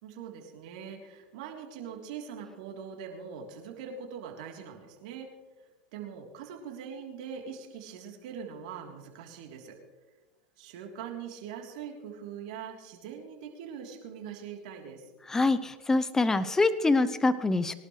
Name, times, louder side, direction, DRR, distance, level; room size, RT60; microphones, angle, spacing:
voice 1, 0.0-5.3 5.9-9.8 10.6-15.1, right 7 dB, 65° right, 1 dB, 3.4 m, -42 dB
voice 2, 15.3-17.7, left 3 dB, 10° left, 13 dB, 0.7 m, -25 dB
23.0 x 12.0 x 3.3 m, 1.2 s
hypercardioid pair, 105°, 4 cm